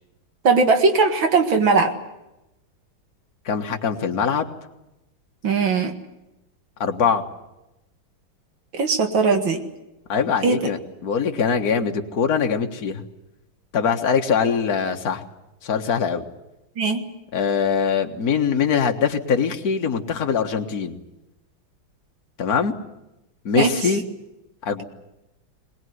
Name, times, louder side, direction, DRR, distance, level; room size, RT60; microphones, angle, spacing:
voice 1, 0.4-2.0 5.4-5.9 8.7-9.6 10.4-10.6 16.8-17.0 23.6-23.7, right 4 dB, 70° right, 6 dB, 2.6 m, -19 dB
voice 2, 3.5-4.5 6.8-7.2 10.1-13.0 13.7-15.2 15.6-16.2 17.3-21.0 22.4-22.7 23.5-24.0 24.6-24.8, left 6 dB, 50° left, 3 dB, 1.9 m, -22 dB
22.5 x 19.5 x 9.5 m, 0.95 s
omnidirectional pair, 2.2 m